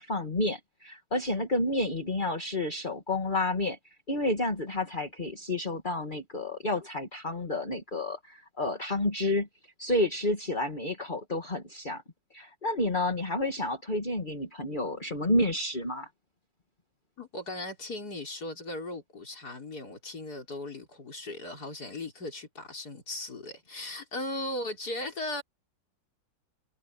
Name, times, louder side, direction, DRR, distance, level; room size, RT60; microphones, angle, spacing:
voice 1, 0.0-3.8 4.1-9.5 9.8-12.0 12.3-16.1, left 2 dB, 25° left, 2.5 m, -30 dB
voice 2, 17.2-25.4, left 1 dB, 60° left, 5.3 m, -37 dB
omnidirectional pair, 1.9 m